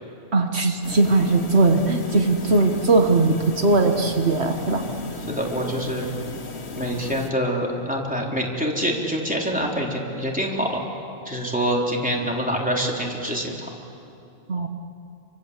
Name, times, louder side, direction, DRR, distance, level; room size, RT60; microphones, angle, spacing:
voice 1, 0.3-4.8 14.5-14.7, right 3 dB, 75° right, 5 dB, 1.7 m, -19 dB
sound 1, 0.8-7.3, left 3 dB, 75° left, 1.7 m, -35 dB
voice 2, 5.3-6.1 6.8-10.8 11.3-13.6, equal, 5° right, -2 dB, 3.9 m, -25 dB
29.5 x 24.5 x 8.2 m, 2.6 s
omnidirectional pair, 1.1 m